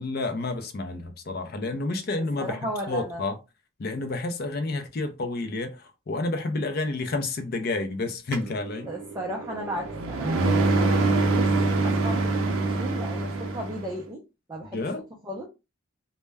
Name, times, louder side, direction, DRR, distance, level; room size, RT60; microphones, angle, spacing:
voice 1, 0.0-2.6 2.9-3.4 3.8-8.9 14.7-15.0, left 2 dB, 45° left, 0.4 m, -30 dB
voice 2, 2.4-3.2 8.9-11.6 11.8-14.2 14.5-14.9 15.2-15.5, equal, 15° right, 0.4 m, -35 dB
sound 1, 8.3-13.9, right 3 dB, 70° right, 0.5 m, -25 dB
2.1 x 2.1 x 3.3 m
head